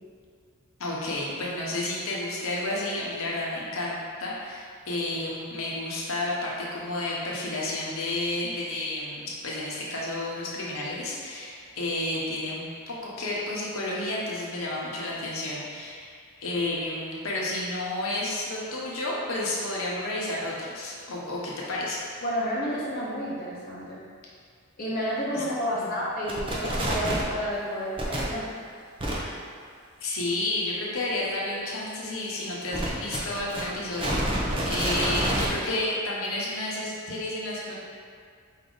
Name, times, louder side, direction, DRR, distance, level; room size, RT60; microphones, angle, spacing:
voice 1, 0.8-22.0 25.3-25.4 25.8-25.9 29.2-29.3 30.0-37.7, left 2 dB, 70° left, -5 dB, 0.9 m, -31 dB
voice 2, 22.2-24.0 24.8-28.5, equal, 40° left, -7 dB, 0.7 m, -30 dB
sound 1, 26.3-27.3 28.0-28.2 29.0-29.1 32.7-35.5, right 1 dB, 25° right, 0.6 m, -27 dB
4.8 x 2.7 x 3.8 m, 2.1 s
head